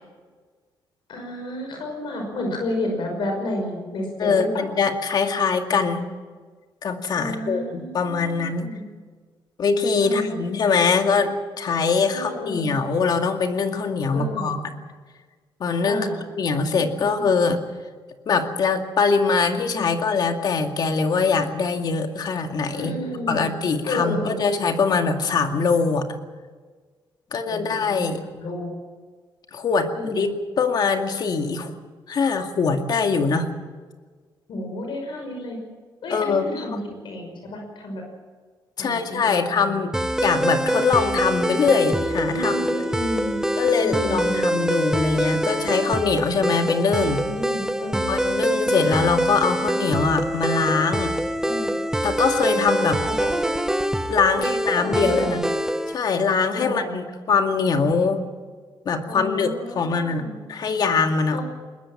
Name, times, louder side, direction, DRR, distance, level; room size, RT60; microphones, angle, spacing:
voice 1, 1.1-4.5 7.1-8.8 10.0-10.4 12.1-12.7 14.1-14.5 15.9-16.2 17.1-17.3 19.6-19.9 22.7-23.4 23.9-24.4 27.5-28.1 28.4-28.7 29.9-30.3 34.5-35.6 36.0-38.0 38.8-39.7 42.3-43.4 43.8-44.5 46.9-48.1 51.4-51.8 52.4-53.4 54.3-55.3 56.5-56.9 59.1-60.4 61.3-61.4, left 1 dB, 70° left, 2 dB, 5.7 m, -31 dB
voice 2, 4.2-6.1 6.8-8.7 9.6-14.7 15.6-16.1 16.4-17.6 18.3-22.9 23.3-26.1 27.3-28.2 29.5-30.3 30.6-31.7 32.1-33.5 36.1-36.6 38.8-39.9 40.2-42.5 43.6-47.2 48.1-51.2 52.0-53.0 54.1-55.4 55.9-58.2 58.9-60.2 60.5-61.4, left 5 dB, 50° left, 5 dB, 2.3 m, -22 dB
sound 1, 39.9-56.0, right 1 dB, 5° right, 1.0 m, -25 dB
21.0 x 21.0 x 7.4 m, 1.5 s
cardioid pair, 125°, 9 cm